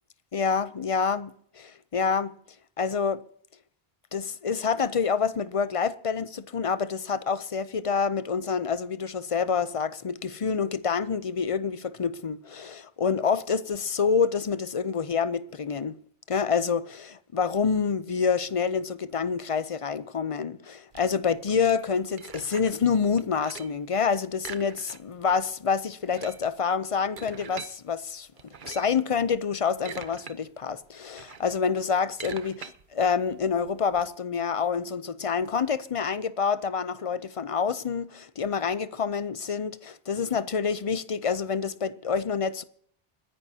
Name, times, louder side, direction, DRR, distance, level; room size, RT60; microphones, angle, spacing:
voice 1, 0.3-1.3 1.9-2.3 2.8-3.2 4.1-16.0 16.3-28.3 28.6-42.6, left 6 dB, 40° left, 0.5 m, -27 dB
sound 1, 20.9-22.9 23.2-23.8 24.4-25.3 25.5-25.6 25.9-27.7 28.4-29.0 29.5-30.3 30.7-34.0, right 6 dB, 55° right, 1.0 m, -44 dB
29.0 x 11.0 x 2.8 m
omnidirectional pair, 1.1 m